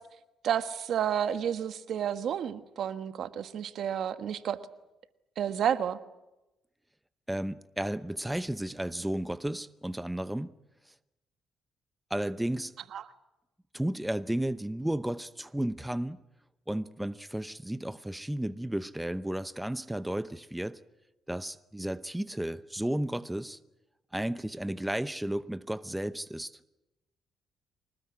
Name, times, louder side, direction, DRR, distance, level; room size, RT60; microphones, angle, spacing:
voice 1, 0.4-4.6 5.4-6.0 12.9-13.0, right 9 dB, 65° right, 1.4 m, -30 dB
voice 2, 7.3-10.5 10.9-11.0 12.1-12.7 13.7-16.2 16.7-20.8 21.3-23.6 24.1-26.6, right 1 dB, 5° right, 0.8 m, -33 dB
25.0 x 19.5 x 9.7 m
cardioid pair, 90°, 0 cm